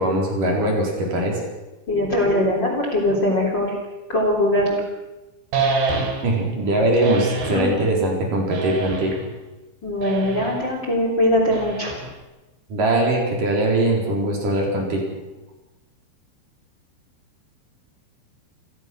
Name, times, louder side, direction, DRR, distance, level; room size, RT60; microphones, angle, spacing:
voice 1, 0.0-1.4 6.2-9.3 12.7-15.0, right 1 dB, 45° right, -1 dB, 5.8 m, -21 dB
voice 2, 1.9-3.8 4.1-4.8 7.4-7.8 9.8-11.9, left 1 dB, 25° left, 1 dB, 3.8 m, -21 dB
sound 1, 5.5-6.4 7.0-7.7 8.5-9.3 10.0-10.6 11.5-12.2, right 4 dB, 65° right, 5.6 m, -26 dB
29.5 x 18.5 x 6.3 m, 1.1 s
omnidirectional pair, 5.4 m